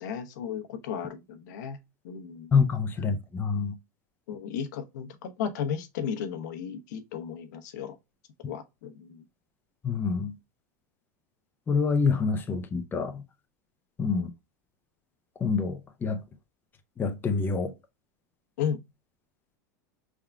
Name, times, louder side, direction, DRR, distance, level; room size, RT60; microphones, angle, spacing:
voice 1, 0.0-1.8 2.0-2.5 4.3-8.0 8.5-9.2 14.1-14.3 18.6-18.8, left 7 dB, 75° left, 0.8 m, -34 dB
voice 2, 2.5-3.7 9.8-10.3 11.7-13.2 14.0-14.3 15.4-16.2 17.0-17.7, left 5 dB, 20° left, 0.5 m, -26 dB
4.7 x 3.5 x 2.2 m
supercardioid pair, 115°, 10 cm